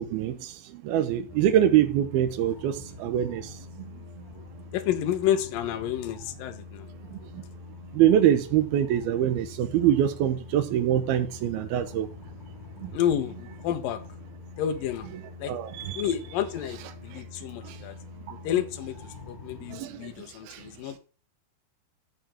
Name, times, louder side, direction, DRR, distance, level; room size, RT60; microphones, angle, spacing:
voice 1, 0.0-3.9 7.1-7.4 7.9-12.1 12.8-12.9 15.5-16.0 17.1-17.2 17.6-17.8 18.3-18.4 19.7-20.6, right 11 dB, 75° right, 2.3 m, -25 dB
sound 1, 1.3-19.8, left 3 dB, 50° left, 0.5 m, -45 dB
voice 2, 4.7-6.9 12.9-14.0 14.6-15.1 15.4-18.0 18.4-19.0 19.3-21.0, left 10 dB, 65° left, 2.4 m, -30 dB
14.0 x 4.7 x 6.1 m
omnidirectional pair, 5.4 m